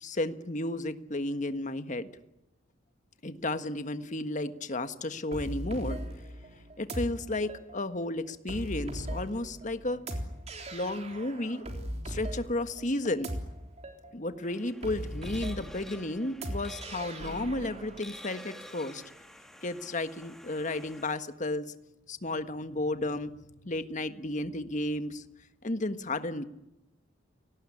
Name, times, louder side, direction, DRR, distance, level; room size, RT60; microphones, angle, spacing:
voice 1, 0.0-2.1 3.2-6.0 6.8-10.0 10.7-11.7 12.1-13.3 14.1-19.0 19.6-21.7 22.1-23.3 23.6-25.2 25.6-26.4, left 2 dB, 40° left, 10 dB, 1.5 m, -33 dB
sound 1, 5.3-18.0, equal, 35° right, 3.6 m, -39 dB
sound 2, 14.4-21.1, equal, ahead, 2.2 m, -50 dB
29.5 x 18.5 x 9.9 m, 0.92 s
head